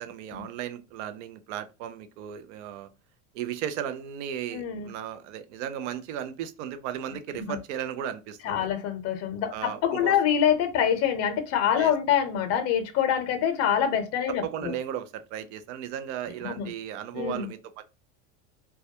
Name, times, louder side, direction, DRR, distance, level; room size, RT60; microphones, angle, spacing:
voice 1, 0.0-2.9 3.3-8.7 9.5-10.1 11.8-11.9 14.4-17.8, right 10 dB, 85° right, 0.5 m, -35 dB
voice 2, 4.5-4.9 7.3-7.6 8.4-14.7 16.4-16.7 17.1-17.5, left 9 dB, 45° left, 0.6 m, -25 dB
2.2 x 2.2 x 2.7 m
supercardioid pair, 130°, 35 cm